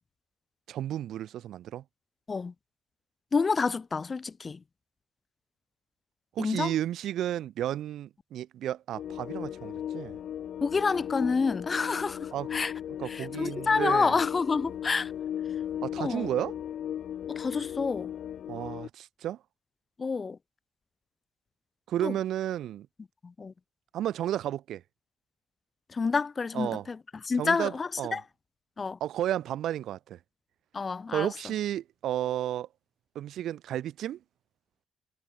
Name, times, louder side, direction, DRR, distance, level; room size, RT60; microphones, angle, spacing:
voice 1, 0.7-1.8 6.3-10.2 12.3-12.5 13.0-14.1 15.8-16.5 18.5-19.4 21.9-22.9 23.9-24.8 26.5-26.9 27.4-28.2 29.0-30.2 31.1-32.7 33.1-34.2, right 12 dB, 70° right, 4.6 m, -32 dB
voice 2, 3.3-4.6 6.4-6.7 10.6-12.7 13.1-15.1 16.0-16.3 17.3-18.1 20.0-20.4 22.0-22.1 23.2-23.5 25.9-27.0 27.2-28.2 28.8-29.0 30.7-31.3, left 4 dB, 25° left, 2.8 m, -28 dB
sound 1, 8.9-18.9, left 10 dB, 55° left, 3.3 m, -37 dB
cardioid pair, 160°, 0 cm